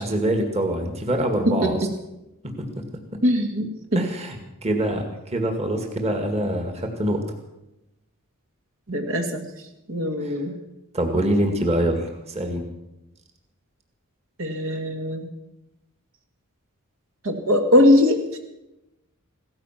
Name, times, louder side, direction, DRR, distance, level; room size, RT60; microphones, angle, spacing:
voice 1, 0.0-1.8 2.4-2.7 3.9-7.2 10.2-10.4 10.9-12.6, right 1 dB, 30° right, 4 dB, 1.9 m, -25 dB
voice 2, 1.5-1.9 3.2-4.0 8.9-9.4 9.9-10.5 14.4-15.3 17.2-18.2, left 1 dB, 65° right, 4 dB, 2.1 m, -21 dB
17.0 x 14.0 x 5.9 m, 0.93 s
head